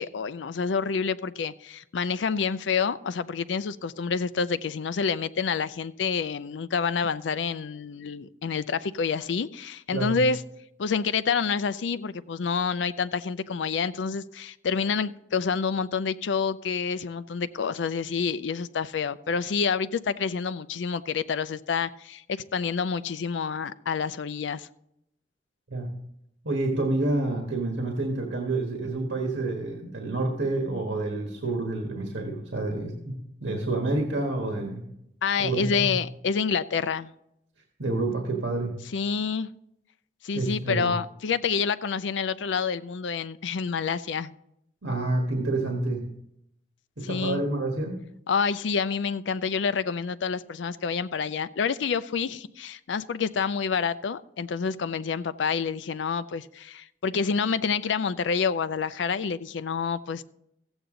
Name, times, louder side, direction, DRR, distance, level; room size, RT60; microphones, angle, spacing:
voice 1, 0.0-10.4 10.8-24.7 35.2-37.1 38.9-39.5 40.2-44.3 47.0-47.4 48.3-60.2, left 5 dB, 80° left, 0.5 m, -28 dB
voice 2, 26.4-34.8 35.4-35.9 37.8-38.7 40.3-41.0 44.8-46.1 47.0-48.0, right 2 dB, 90° right, 1.5 m, -28 dB
14.5 x 8.0 x 3.8 m
head